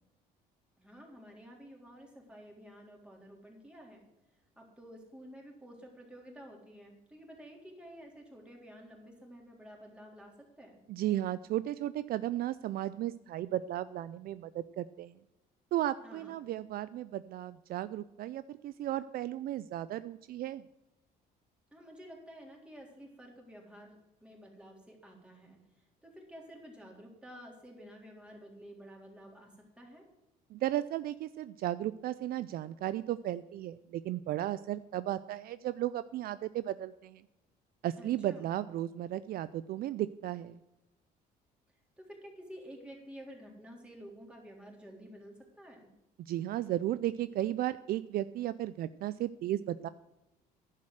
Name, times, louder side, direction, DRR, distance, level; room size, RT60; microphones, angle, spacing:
voice 1, 0.8-4.0 4.6-10.8 16.0-16.3 21.7-30.1 38.0-38.5 42.0-45.9, equal, 5° right, -1 dB, 3.6 m, -51 dB
voice 2, 10.9-15.1 15.7-20.6 30.5-37.2 37.8-40.6 46.2-49.9, right 13 dB, 65° right, 15 dB, 0.4 m, -35 dB
10.5 x 7.4 x 7.8 m, 0.92 s
cardioid pair, 110°, 17 cm